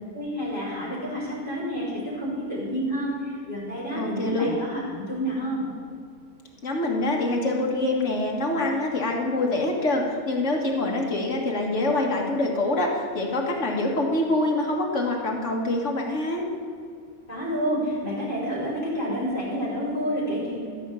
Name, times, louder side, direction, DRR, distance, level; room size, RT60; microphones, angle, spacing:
voice 1, 0.1-5.7 17.3-20.7, equal, 40° left, -7 dB, 4.1 m, -29 dB
voice 2, 4.0-4.5 6.6-16.4, left 2 dB, 60° left, 0 dB, 2.0 m, -25 dB
14.0 x 5.4 x 8.2 m, 2.3 s
omnidirectional pair, 1.4 m